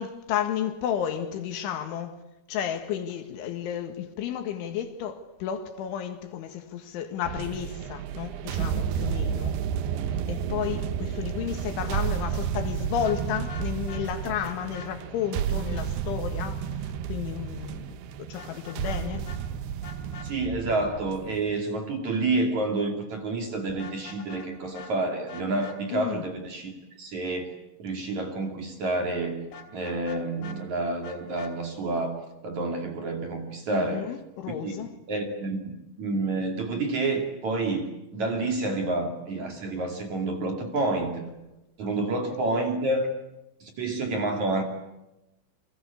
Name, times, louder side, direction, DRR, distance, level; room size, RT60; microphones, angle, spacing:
voice 1, 0.0-2.2 2.5-9.6 10.3-19.3 25.9-26.3 33.7-34.9 42.0-42.1, left 9 dB, 75° left, 4.1 m, -32 dB
sound 1, 7.2-21.6, right 8 dB, 70° right, 2.7 m, -31 dB
Vehicle horn car horn honking, 13.0-14.0 14.4-14.9 18.4-19.0 19.3-19.4 19.8-20.3 23.7-24.5 24.7-24.9 25.3-25.8 29.5-30.6 31.0-31.5, left 5 dB, 55° left, 4.9 m, -44 dB
voice 2, 20.2-26.7 27.0-27.5 27.8-32.2 32.4-34.1 34.6-37.9 38.1-41.3 41.8-43.1 43.6-44.6, right 2 dB, 45° right, 3.3 m, -29 dB
30.0 x 24.0 x 8.3 m
omnidirectional pair, 5.7 m